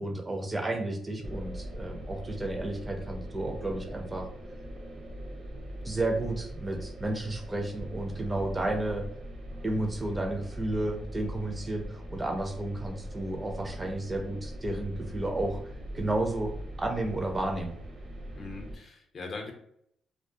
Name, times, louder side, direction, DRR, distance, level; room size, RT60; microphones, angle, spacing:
voice 1, 0.0-4.3 5.8-9.0 9.6-16.5 16.8-17.7, right 2 dB, 20° right, 3 dB, 0.4 m, -32 dB
sound 1, 1.2-18.8, equal, 60° right, 0.6 m, -41 dB
voice 2, 18.3-19.5, left 3 dB, 45° left, 2 dB, 0.6 m, -40 dB
2.2 x 2.2 x 2.6 m, 0.69 s
cardioid pair, 90°, 0 cm